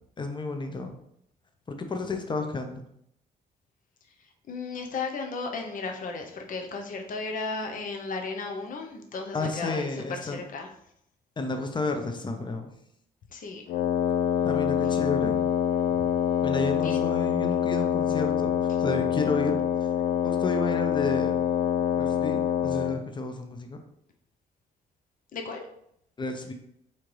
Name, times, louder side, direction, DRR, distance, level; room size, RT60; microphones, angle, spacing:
voice 1, 0.2-1.0 1.7-2.8 9.3-10.4 11.4-12.7 14.4-15.4 16.4-18.5 18.8-19.9 20.2-21.4 22.0-23.8 26.2-26.5, left 3 dB, 30° left, 5 dB, 0.7 m, -31 dB
voice 2, 4.5-9.9 10.2-10.7 13.3-13.6 16.8-17.0 25.3-25.6, left 4 dB, 55° left, 3 dB, 0.8 m, -34 dB
Wind instrument woodwind instrument, 13.7-23.0, left 9 dB, 70° left, 0.4 m, -25 dB
4.3 x 3.8 x 3.2 m, 0.74 s
cardioid pair, 80°, 17 cm